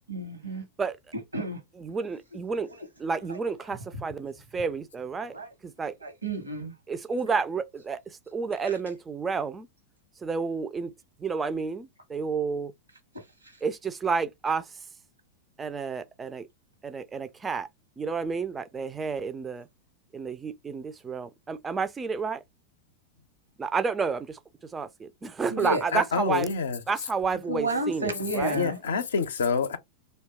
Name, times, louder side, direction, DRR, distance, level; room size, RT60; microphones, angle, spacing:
voice 1, 0.1-0.6 1.1-1.6 2.8-2.9 3.3-3.4 5.2-5.5 6.0-6.7 8.6-8.8 25.5-25.8 27.3-28.8, right 1 dB, 80° right, 0.9 m, -31 dB
voice 2, 1.8-2.7 3.0-5.4 5.6-5.9 6.9-9.7 10.2-10.9 11.2-12.7 13.6-14.7 15.6-16.5 16.8-17.7 18.0-19.7 20.1-22.4 23.6-24.4 24.7-26.5 26.9-28.6, right 5 dB, 15° right, 0.3 m, -30 dB
voice 3, 25.9-26.8 28.5-29.8, left 5 dB, 65° left, 0.5 m, -27 dB
2.7 x 2.2 x 3.3 m
figure-of-eight pair, 90°, 0 cm